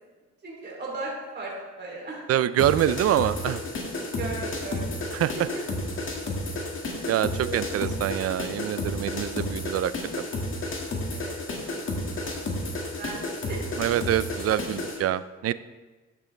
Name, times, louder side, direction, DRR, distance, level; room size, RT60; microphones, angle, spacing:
voice 1, 0.4-1.5 1.8-2.2 4.2-5.0 5.5-5.6 7.4-8.3 11.1-11.3 13.0-13.7, right 2 dB, 35° right, -3 dB, 3.1 m, -37 dB
voice 2, 2.3-3.6 5.1-5.4 7.1-9.9 13.8-15.5, right 12 dB, 55° right, 16 dB, 0.4 m, -25 dB
sound 1, 2.6-15.0, left 2 dB, 40° left, 2.0 m, -32 dB
12.0 x 6.1 x 3.3 m, 1.3 s
cardioid pair, 90°, 30 cm